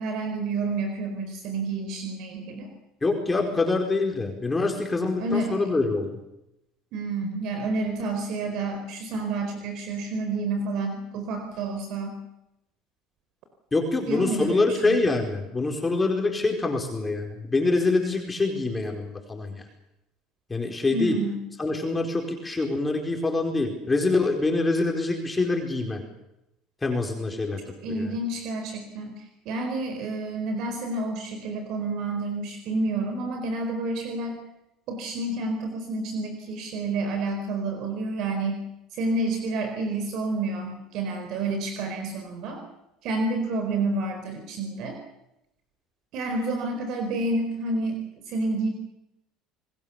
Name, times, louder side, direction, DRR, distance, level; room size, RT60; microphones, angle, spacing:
voice 1, 0.0-2.7 5.2-5.7 6.9-12.2 14.1-15.0 20.9-21.4 27.8-34.4 34.9-38.7 38.9-42.6 43.0-45.0 46.1-48.0 48.3-48.7, right 2 dB, 65° right, 6 dB, 4.4 m, -29 dB
voice 2, 3.0-6.2 13.7-19.6 20.5-21.2 21.6-26.0 26.8-28.2, left 3 dB, 15° left, 2 dB, 4.6 m, -25 dB
29.0 x 20.5 x 7.1 m, 0.88 s
supercardioid pair, 105°, 0 cm